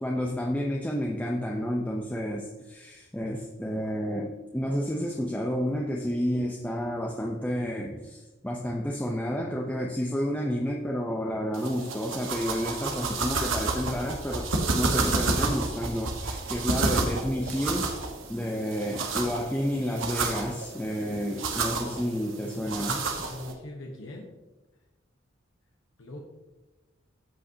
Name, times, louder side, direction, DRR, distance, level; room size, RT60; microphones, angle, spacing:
voice 1, 0.0-17.9 18.3-23.1, equal, 10° left, -2 dB, 0.6 m, -30 dB
sound 1, 11.5-23.5, right 3 dB, 85° right, 1.2 m, -30 dB
voice 2, 23.3-24.3 26.0-26.2, left 1 dB, 80° left, 0 dB, 1.0 m, -41 dB
14.5 x 5.4 x 2.8 m, 1.1 s
head